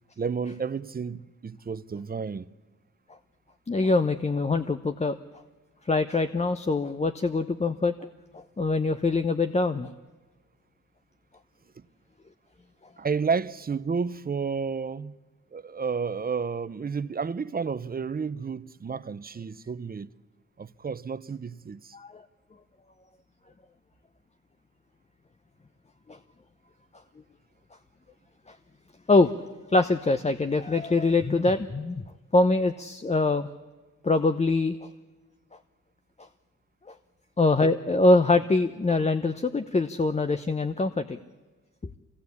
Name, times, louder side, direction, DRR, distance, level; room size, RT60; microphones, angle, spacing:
voice 1, 0.2-2.5 11.8-11.9 13.0-15.2 15.5-20.1 20.6-22.0, right 5 dB, 30° right, 0.7 m, -31 dB
voice 2, 3.7-5.2 5.8-7.9 8.3-9.9 21.9-22.2 26.1-26.2 28.5-28.6 29.1-29.3 29.7-32.0 32.3-33.5 34.0-34.8 36.9-37.0 37.4-41.2, left 3 dB, 20° left, 0.9 m, -24 dB
24.0 x 17.5 x 8.4 m
cardioid pair, 65°, 30 cm